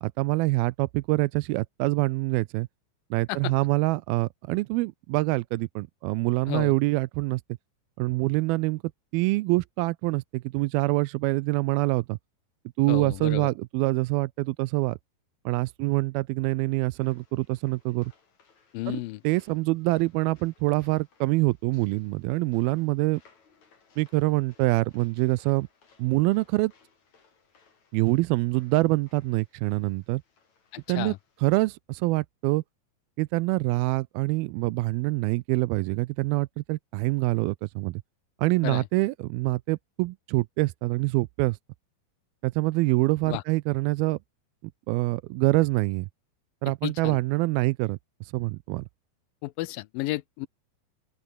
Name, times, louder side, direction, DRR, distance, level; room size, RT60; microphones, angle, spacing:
voice 1, 0.0-2.7 3.1-7.4 8.0-8.8 9.1-12.2 12.8-15.0 15.5-18.1 18.9-23.2 24.0-25.7 26.0-26.7 27.9-30.2 30.9-32.6 33.2-38.0 38.4-41.6 42.4-44.2 44.9-46.1 46.6-48.9, right 21 dB, 85° right, 2.4 m, -25 dB
voice 2, 12.9-13.5 18.7-19.2 30.7-31.2 38.6-38.8 43.3-43.4 46.8-47.2 49.4-50.5, left 18 dB, 75° left, 2.3 m, -32 dB
sound 1, 16.9-31.6, left 5 dB, 50° left, 5.5 m, -64 dB
open air
omnidirectional pair, 4.3 m